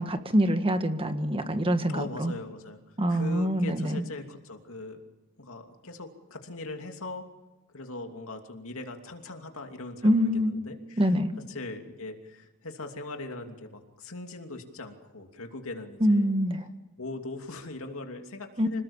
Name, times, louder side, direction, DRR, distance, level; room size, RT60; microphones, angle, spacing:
voice 1, 0.0-2.3 3.0-4.0 10.0-10.5 11.0-11.3 16.0-16.7 18.6-18.7, equal, 25° right, 8 dB, 1.6 m, -25 dB
voice 2, 1.9-2.8 3.1-5.0 5.4-7.3 7.7-11.1 11.5-16.3 17.0-18.8, left 2 dB, 65° left, 4 dB, 2.8 m, -40 dB
26.5 x 19.5 x 7.3 m, 1.1 s
head